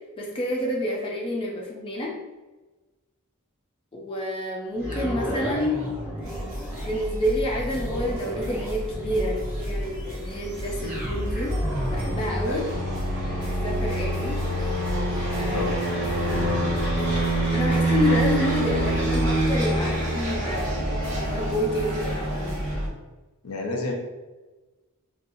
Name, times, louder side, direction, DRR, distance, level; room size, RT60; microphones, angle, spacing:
voice 1, 0.2-2.1 3.9-5.8 6.8-11.6 11.9-12.6 13.4-14.4 15.3-15.7 16.0-16.6 17.3-22.6, left 1 dB, 25° left, -2 dB, 0.4 m, -29 dB
sound 1, 4.7-18.9 19.5-19.6, equal, 10° right, 0.9 m, -36 dB
sound 2, 6.2-22.9, equal, 65° right, 1.2 m, -32 dB
sound 3, 9.5-22.8, right 1 dB, 35° right, 1.2 m, -27 dB
voice 2, 23.4-23.9, left 2 dB, 75° left, 0 dB, 0.6 m, -29 dB
2.7 x 2.3 x 2.6 m, 1.2 s
head